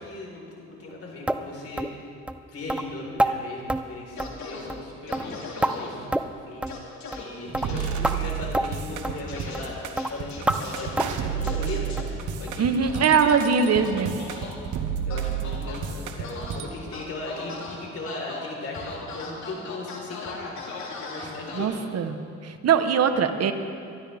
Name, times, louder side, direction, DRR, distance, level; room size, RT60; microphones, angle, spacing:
voice 1, 0.0-2.1 2.5-12.8 15.1-20.5 21.0-21.8, left 2 dB, 50° left, -2 dB, 4.1 m, -37 dB
sound 1, 1.3-1.4 1.8-1.9 2.3-2.4 2.7-2.8 3.2-3.3 3.7-3.8 4.2-4.4 4.7-4.9 5.1-5.7 6.1-6.4 6.6-6.8 7.1-7.3 7.5-7.7 8.0-8.2 8.5-8.7 9.0-9.2 9.5-9.7 10.0-10.1 10.5-10.6 11.0-11.2 11.5-11.6 12.0-12.1 12.5-12.6 13.0-13.1 13.5-13.6, right 1 dB, 5° right, 0.5 m, -27 dB
sound 2, 4.2-4.6 5.1-5.9 6.7-7.2 7.6-7.8 9.3-9.6 10.0-10.9 11.4-12.0 12.8-14.5 15.1-15.8 16.2-16.6 16.9-17.7 18.1-18.4 18.7-21.6, left 4 dB, 70° left, 2.7 m, -38 dB
sound 3, 7.5-16.7, right 8 dB, 85° right, 1.2 m, -31 dB
voice 2, 12.6-14.3 21.5-23.5, right 6 dB, 55° right, 9 dB, 1.1 m, -22 dB
23.0 x 12.5 x 3.5 m, 2.5 s
cardioid pair, 90°, 30 cm